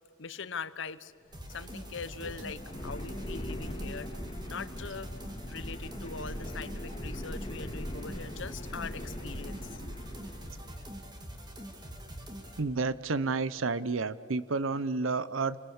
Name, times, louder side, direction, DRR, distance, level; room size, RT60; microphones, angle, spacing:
voice 1, 0.2-1.1 1.5-4.1 4.5-5.1 5.4-9.8, left 5 dB, 65° left, 14 dB, 1.0 m, -41 dB
sound 1, 1.2-10.8, left 1 dB, 25° left, 1.9 m, -41 dB
sound 2, 1.3-12.6, equal, 20° right, 2.6 m, -44 dB
voice 2, 12.6-15.6, right 4 dB, 80° right, 16 dB, 0.9 m, -30 dB
29.0 x 22.5 x 7.3 m, 2.1 s
head